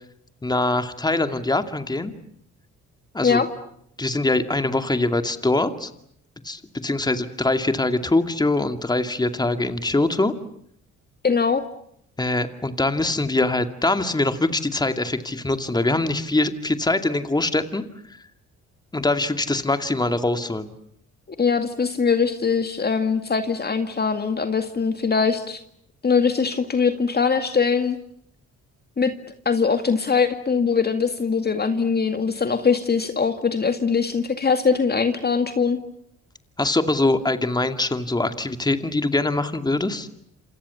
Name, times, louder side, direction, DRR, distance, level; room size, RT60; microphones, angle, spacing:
voice 1, 0.4-2.1 3.1-3.4 4.0-5.9 6.4-10.3 12.2-17.8 18.9-20.7 36.6-40.1, left 2 dB, 15° left, 8 dB, 2.4 m, -23 dB
voice 2, 11.2-11.6 21.4-25.6 26.0-28.0 29.0-29.1 29.5-35.8, left 5 dB, 30° left, 8 dB, 2.1 m, -21 dB
28.0 x 27.5 x 7.0 m, 0.70 s
cardioid pair, 90°, 30 cm